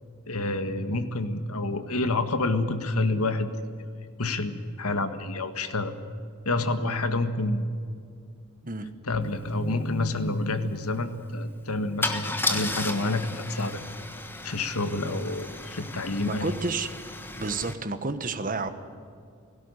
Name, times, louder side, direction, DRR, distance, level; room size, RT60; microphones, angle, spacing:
voice 1, 0.3-3.5 4.2-5.9 6.4-7.7 9.0-13.8 14.4-16.5, left 2 dB, 85° left, 10 dB, 1.7 m, -28 dB
Car / Engine starting / Idling, 9.4-9.5 9.8-10.0 12.0-17.7, left 2 dB, 10° left, 1.4 m, -34 dB
voice 2, 16.2-16.9 17.4-18.7, right 3 dB, 40° right, 11 dB, 1.3 m, -30 dB
17.0 x 17.0 x 9.9 m, 2.4 s
head